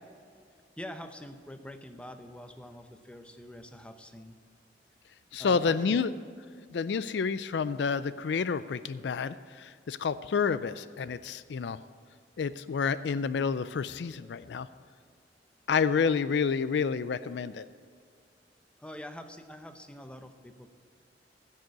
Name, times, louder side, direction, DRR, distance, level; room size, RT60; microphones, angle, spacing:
voice 1, 0.8-4.4 5.4-6.0 18.8-20.7, left 1 dB, 5° left, 7 dB, 0.7 m, -45 dB
voice 2, 5.3-6.1 6.7-11.8 12.4-14.7 15.7-17.7, left 5 dB, 70° left, 15 dB, 0.4 m, -29 dB
15.0 x 6.6 x 8.5 m, 2.2 s
head